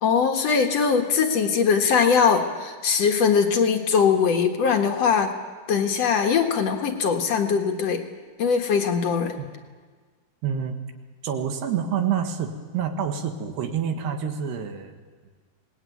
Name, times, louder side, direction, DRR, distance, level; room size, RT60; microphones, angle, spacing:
voice 1, 0.0-5.3 5.7-8.0 8.4-9.4, left 6 dB, 55° left, 4 dB, 2.0 m, -21 dB
voice 2, 10.4-10.8 11.2-15.0, right 7 dB, 85° right, 4 dB, 3.9 m, -27 dB
24.5 x 19.5 x 9.3 m, 1.5 s
omnidirectional pair, 4.6 m